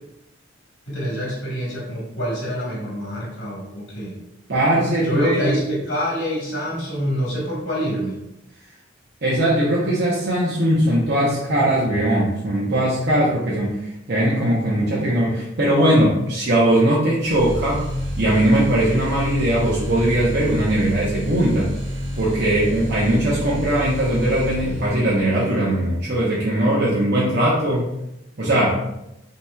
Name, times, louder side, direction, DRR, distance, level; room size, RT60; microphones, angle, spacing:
voice 1, 0.9-4.2 5.0-8.2, equal, 65° left, -5 dB, 1.5 m, -26 dB
voice 2, 4.5-5.4 9.2-13.8 14.1-17.8 18.2-21.7 22.1-27.8 28.4-28.8, right 1 dB, 55° right, -7 dB, 0.8 m, -20 dB
sound 1, 17.2-25.2, equal, 80° right, 1.1 m, -29 dB
5.7 x 3.0 x 2.3 m, 0.86 s
head